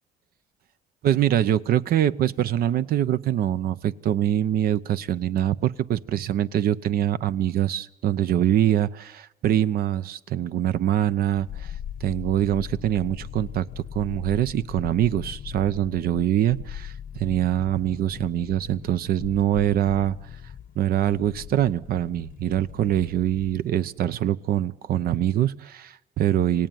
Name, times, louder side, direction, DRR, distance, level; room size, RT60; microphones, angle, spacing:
voice 1, 1.0-11.7 12.0-20.2 20.7-26.7, right 11 dB, 60° right, 14 dB, 0.9 m, -24 dB
sound 1, 11.3-23.7 24.0-24.1, left 9 dB, 55° left, 0.9 m, -40 dB
27.0 x 18.0 x 9.4 m, 0.91 s
cardioid pair, 110°, 17 cm